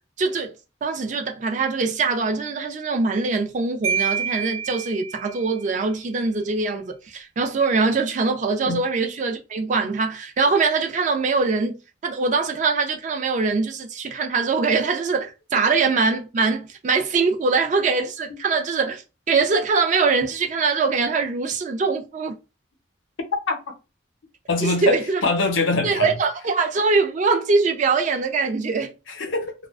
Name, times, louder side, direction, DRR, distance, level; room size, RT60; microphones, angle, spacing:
voice 1, 0.2-0.5 0.8-22.3 24.6-25.2 25.8-28.9, right 4 dB, 40° right, 0.3 m, -23 dB
Marimba xylophone, 3.8-5.6, right 7 dB, 90° right, 0.9 m, -27 dB
voice 2, 24.5-26.1 29.1-29.5, left 3 dB, 85° left, 0.6 m, -23 dB
2.4 x 2.1 x 2.3 m
head